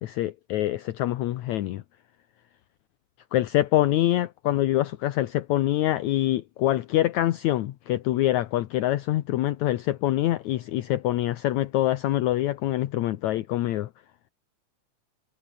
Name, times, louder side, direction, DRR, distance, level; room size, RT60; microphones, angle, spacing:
voice 1, 0.0-1.8 3.3-13.9, left 14 dB, 70° left, 2.1 m, -25 dB
omnidirectional pair, 3.6 m